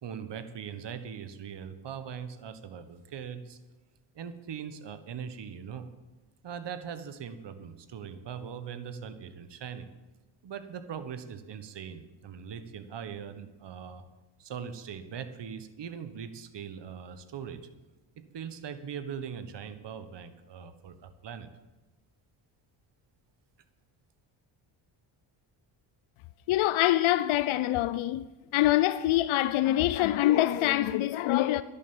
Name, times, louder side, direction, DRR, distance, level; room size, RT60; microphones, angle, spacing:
voice 1, 0.0-3.6 4.1-5.9 6.4-9.9 10.4-14.0 14.4-17.6 18.2-21.5, right 7 dB, 55° right, 1.4 m, -41 dB
voice 2, 26.5-28.2 28.5-31.6, left 14 dB, 70° left, 0.6 m, -25 dB
11.5 x 10.5 x 7.2 m
cardioid pair, 85°, 50 cm